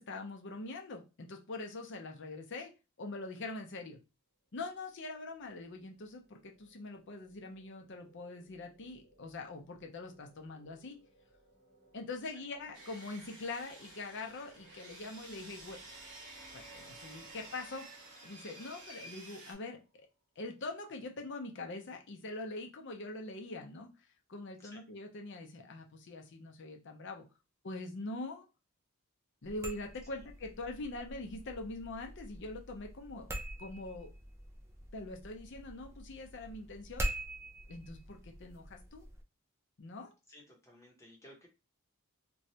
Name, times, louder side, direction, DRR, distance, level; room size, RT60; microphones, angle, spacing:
voice 1, 0.0-2.7 3.0-4.0 4.5-11.0 11.9-15.8 16.5-17.9 18.2-19.8 20.4-23.9 24.3-27.2 27.6-28.4 29.4-33.2 33.6-34.1 34.9-37.1 37.7-39.0 39.8-40.1, left 2 dB, 55° left, 3 dB, 0.6 m, -43 dB
sound 1, 4.7-20.0, right 2 dB, 35° right, 1.0 m, -63 dB
Sawing, 12.7-19.5, right 2 dB, 55° right, 1.3 m, -52 dB
sound 2, 29.4-39.2, right 1 dB, 10° right, 0.4 m, -44 dB
voice 2, 40.3-41.5, left 1 dB, 15° left, -1 dB, 0.8 m, -57 dB
3.0 x 2.3 x 2.7 m, 0.29 s
head